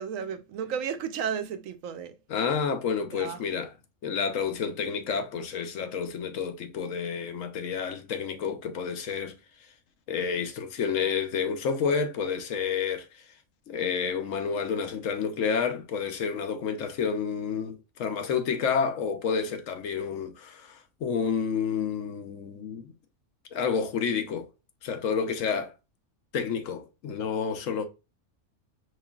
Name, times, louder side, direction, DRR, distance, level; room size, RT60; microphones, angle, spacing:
voice 1, 0.0-2.2 3.1-3.4, right 7 dB, 80° right, 1.0 m, -33 dB
voice 2, 2.3-3.7 4.0-9.4 10.1-13.2 13.7-22.9 23.5-24.5 24.8-25.7 26.3-27.9, left 6 dB, 75° left, 1.1 m, -29 dB
5.2 x 3.3 x 2.3 m
omnidirectional pair, 1.4 m